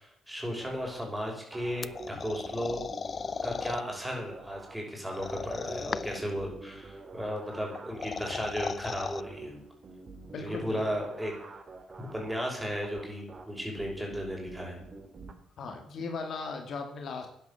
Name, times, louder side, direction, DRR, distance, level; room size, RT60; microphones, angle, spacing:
voice 1, 0.0-2.8 3.4-9.5 10.4-11.3 12.0-14.8, equal, 5° right, 0 dB, 6.0 m, -35 dB
sound 1, 0.6-15.3, right 3 dB, 40° right, 2.6 m, -48 dB
sound 2, 1.8-3.8 5.1-6.3 7.8-9.2, left 5 dB, 40° left, 0.5 m, -36 dB
voice 2, 10.2-10.8 15.6-17.3, left 4 dB, 60° left, 4 dB, 2.7 m, -37 dB
11.5 x 10.5 x 7.3 m, 0.73 s
cardioid pair, 90°, 0 cm